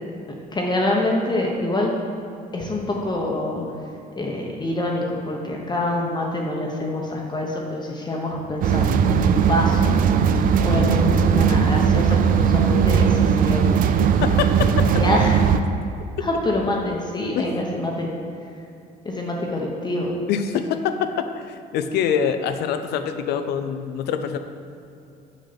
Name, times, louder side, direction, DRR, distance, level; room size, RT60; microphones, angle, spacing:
voice 1, 0.5-1.9 2.5-3.6 4.2-10.0 10.6-14.1 15.0-15.4 16.2-18.1 19.0-20.1, left 1 dB, 25° left, -1 dB, 0.9 m, -25 dB
sound 1, 8.6-15.6, right 7 dB, 55° right, 0.4 m, -18 dB
voice 2, 14.2-14.5 17.3-17.5 20.3-21.1 21.5-24.4, left 8 dB, 75° left, 8 dB, 0.5 m, -24 dB
6.5 x 6.4 x 4.1 m, 2.6 s
cardioid pair, 110°, 17 cm